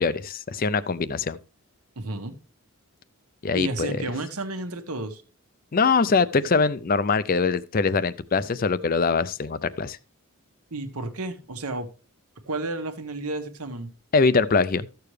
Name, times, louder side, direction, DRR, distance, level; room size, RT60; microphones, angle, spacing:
voice 1, 0.0-1.4 3.4-4.0 5.7-10.0 14.1-14.9, left 4 dB, 40° left, 0.5 m, -23 dB
voice 2, 2.0-2.4 3.5-5.2 10.7-11.9 12.4-13.9, right 2 dB, 80° right, 1.3 m, -32 dB
13.5 x 6.8 x 3.3 m
head